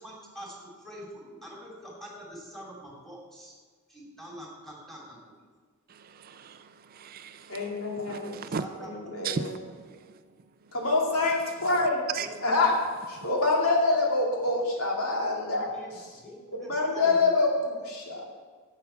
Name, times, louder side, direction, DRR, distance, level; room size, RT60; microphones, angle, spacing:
voice 1, 0.0-3.6 3.9-5.2 8.6-8.9 9.2-9.3 12.2-12.3 15.7-17.3, right 1 dB, ahead, 2.7 m, -45 dB
voice 2, 5.9-8.7 9.2-10.3 10.6-10.7 11.8-12.3 13.2-13.3, right 6 dB, 40° right, 0.4 m, -37 dB
voice 3, 7.5-8.4 8.8-9.5 10.7-12.0 12.4-12.8 13.1-16.1 16.5-18.2, left 3 dB, 75° left, 2.5 m, -26 dB
11.5 x 8.2 x 5.7 m
head